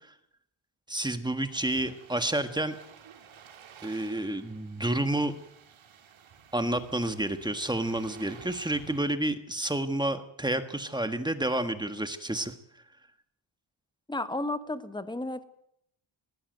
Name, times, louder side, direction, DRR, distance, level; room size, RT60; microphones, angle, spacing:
voice 1, 0.9-2.8 3.8-5.3 6.5-12.5, right 1 dB, 10° right, 9 dB, 1.5 m, -30 dB
sound 1, 1.5-9.0, right 7 dB, 70° right, 2.8 m, -52 dB
voice 2, 14.1-15.5, left 2 dB, 10° left, 11 dB, 1.2 m, -33 dB
19.5 x 15.0 x 9.2 m, 0.74 s
wide cardioid pair, 130°, 49 cm